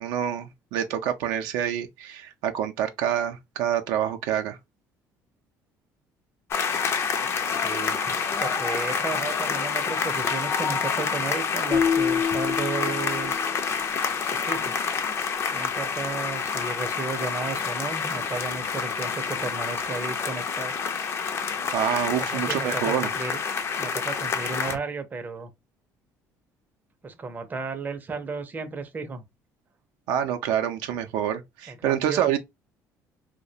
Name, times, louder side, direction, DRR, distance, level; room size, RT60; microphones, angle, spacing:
voice 1, 0.0-4.6 21.7-23.1 30.1-32.4, right 10 dB, 85° right, 0.4 m, -27 dB
sound 1, 6.5-24.8, left 6 dB, 40° left, 0.4 m, -28 dB
voice 2, 7.6-13.6 14.3-14.8 15.5-20.7 22.2-23.4 23.8-25.5 27.0-29.2 31.7-32.4, right 4 dB, 25° right, 0.5 m, -34 dB
sound 2, 11.7-13.9, left 7 dB, 80° left, 0.7 m, -27 dB
2.3 x 2.1 x 2.6 m
cardioid pair, 105°, 7 cm